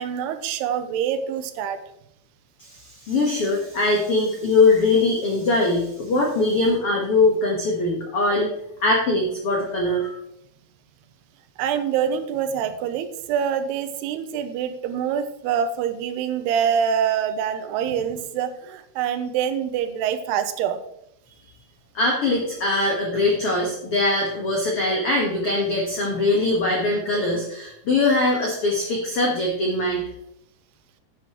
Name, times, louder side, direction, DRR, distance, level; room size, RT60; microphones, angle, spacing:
voice 1, 0.0-1.8 11.6-20.8, right 8 dB, 85° right, 9 dB, 2.6 m, -25 dB
voice 2, 2.6-8.5 8.8-10.2 21.9-30.0, left 2 dB, 75° left, -1 dB, 1.3 m, -22 dB
10.5 x 9.3 x 3.0 m, 0.78 s
omnidirectional pair, 4.8 m